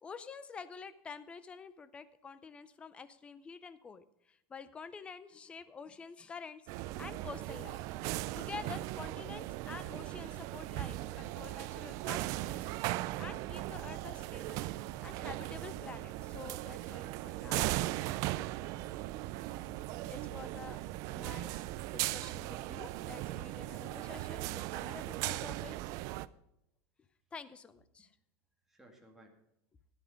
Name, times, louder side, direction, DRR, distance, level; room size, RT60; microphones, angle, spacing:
voice 1, 0.0-6.6 7.0-7.8 8.4-12.6 13.2-14.6 15.0-17.7 20.1-20.8 21.1-25.8 27.3-28.1, left 5 dB, 10° left, 13 dB, 0.5 m, -48 dB
sound 1, 6.7-26.3, right 16 dB, 40° right, 0.4 m, -38 dB
sound 2, 7.8-24.5, right 15 dB, 65° right, 0.8 m, -62 dB
voice 2, 28.7-29.4, right 1 dB, 5° right, 0 dB, 2.0 m, -61 dB
12.5 x 10.5 x 5.1 m, 0.82 s
supercardioid pair, 175°, 9 cm